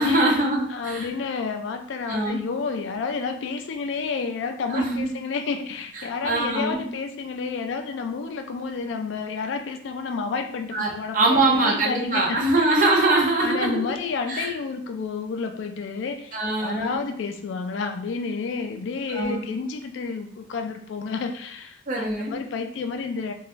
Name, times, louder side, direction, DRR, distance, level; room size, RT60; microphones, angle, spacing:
voice 1, 0.0-1.1 2.1-2.4 4.7-5.1 5.9-6.9 10.7-13.9 14.3-14.5 16.3-17.1 19.1-19.5 21.9-22.4, right 2 dB, 40° right, -2 dB, 0.6 m, -23 dB
voice 2, 0.7-12.7 13.4-23.3, left 4 dB, 70° left, 6 dB, 0.3 m, -30 dB
2.9 x 2.2 x 2.5 m, 0.62 s
head